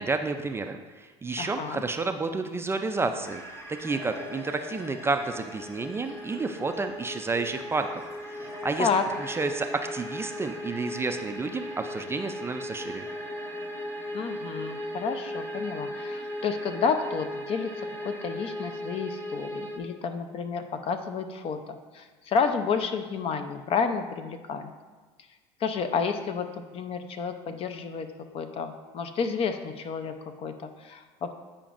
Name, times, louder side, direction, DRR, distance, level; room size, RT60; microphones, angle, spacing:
voice 1, 0.0-3.4 3.8-8.9 9.2-13.1, right 3 dB, 15° right, 6 dB, 0.4 m, -30 dB
voice 2, 1.4-1.8 8.8-9.0 14.1-24.7 25.6-28.1 28.3-31.3, left 5 dB, 40° left, 8 dB, 0.6 m, -30 dB
sound 1, 3.2-19.8, left 1 dB, 20° left, 0.9 m, -37 dB
8.6 x 5.0 x 2.5 m, 1.4 s
supercardioid pair, 95°, 15 cm